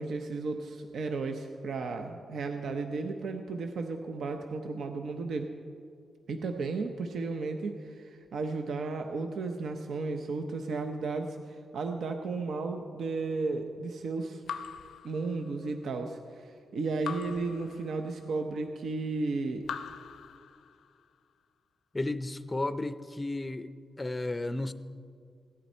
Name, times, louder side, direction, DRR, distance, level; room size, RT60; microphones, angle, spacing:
voice 1, 0.0-5.5 6.3-14.4 15.0-19.7, right 3 dB, 75° right, 5 dB, 0.7 m, -34 dB
Raindrop / Drip, 14.5-15.8 17.0-18.4 19.6-21.0, left 7 dB, 80° left, 0.5 m, -42 dB
voice 2, 21.9-23.7 24.0-24.7, left 2 dB, 15° left, 12 dB, 0.5 m, -33 dB
16.5 x 11.0 x 4.4 m, 2.3 s
wide cardioid pair, 140°, 0 cm